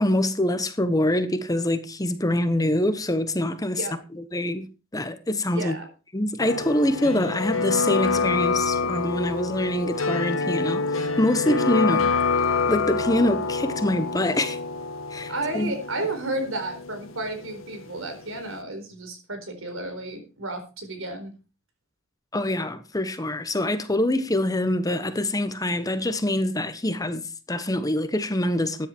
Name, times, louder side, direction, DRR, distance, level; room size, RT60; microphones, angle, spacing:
voice 1, 0.0-3.8 4.2-4.7 4.9-5.8 6.1-12.1 12.7-14.6 15.1-15.7 22.3-28.9, left 1 dB, 20° left, 1.1 m, -25 dB
voice 2, 5.5-5.9 15.3-21.3, right 2 dB, 75° right, 4.3 m, -32 dB
sound 1, 6.4-18.1 18.4-18.5, left 4 dB, 75° left, 1.4 m, -27 dB
13.5 x 10.5 x 4.5 m
head